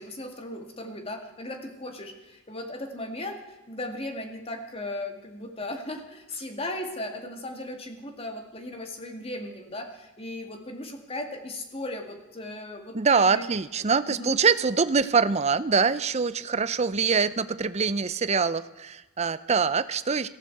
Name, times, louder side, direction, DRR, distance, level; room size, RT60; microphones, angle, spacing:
voice 1, 0.0-13.4 14.1-14.4, left 1 dB, 30° left, 4 dB, 2.1 m, -37 dB
voice 2, 12.9-20.3, right 5 dB, 30° right, 14 dB, 0.6 m, -24 dB
17.5 x 15.0 x 4.7 m, 1.0 s
head